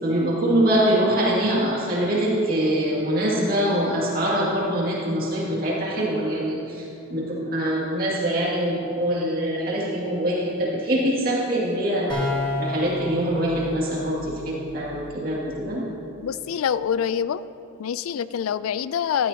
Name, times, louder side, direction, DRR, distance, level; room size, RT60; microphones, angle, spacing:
voice 1, 0.0-12.3 12.6-15.9, right 1 dB, 45° right, -5 dB, 2.4 m, -24 dB
sound 1, 12.1-15.7, left 2 dB, 20° left, 2.1 m, -32 dB
voice 2, 16.2-17.4 17.8-19.3, left 8 dB, 90° left, 16 dB, 0.3 m, -25 dB
13.5 x 13.0 x 2.9 m, 2.8 s
head